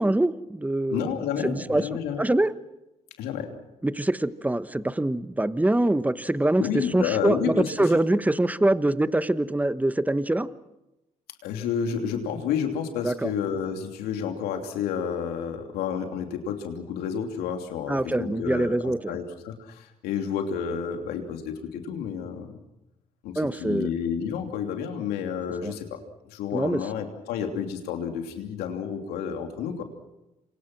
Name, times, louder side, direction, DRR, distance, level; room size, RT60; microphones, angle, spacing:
voice 1, 0.0-1.2 1.4-2.5 3.8-10.5 13.0-13.3 17.9-19.2 23.4-23.9 25.6-25.7 26.5-26.8, right 1 dB, 10° right, 14 dB, 1.1 m, -24 dB
voice 2, 0.9-2.2 3.2-3.5 6.6-8.0 11.4-22.6 23.2-25.9 26.3-29.8, left 7 dB, 85° left, 5 dB, 3.0 m, -30 dB
27.5 x 24.5 x 6.2 m, 0.96 s
supercardioid pair, 55°, 16 cm